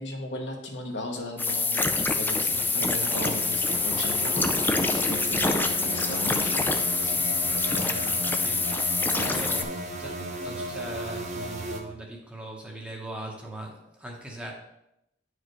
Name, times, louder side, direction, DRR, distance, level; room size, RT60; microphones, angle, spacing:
voice 1, 0.0-6.6 9.3-9.4, left 1 dB, 75° left, 1 dB, 1.2 m, -36 dB
sound 1, 1.4-9.6, left 3 dB, 10° left, 0.4 m, -26 dB
sound 2, 2.3-11.8, right 1 dB, 40° right, 0.8 m, -36 dB
voice 2, 7.0-14.5, right 1 dB, 5° right, -1 dB, 1.0 m, -41 dB
9.2 x 4.8 x 3.1 m, 0.85 s
head